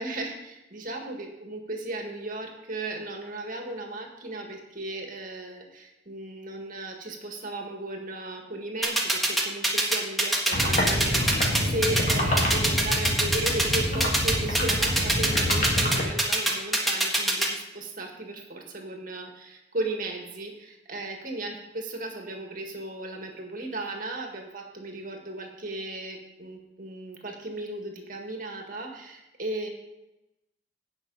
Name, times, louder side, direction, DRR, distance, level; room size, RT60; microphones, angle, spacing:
voice 1, 0.0-29.7, right 2 dB, 50° right, 2 dB, 1.8 m, -36 dB
sound 1, 8.8-17.5, right 1 dB, ahead, 1.6 m, -23 dB
sound 2, 10.5-16.0, left 1 dB, 50° left, 2.2 m, -27 dB
17.0 x 5.9 x 4.0 m, 0.96 s
head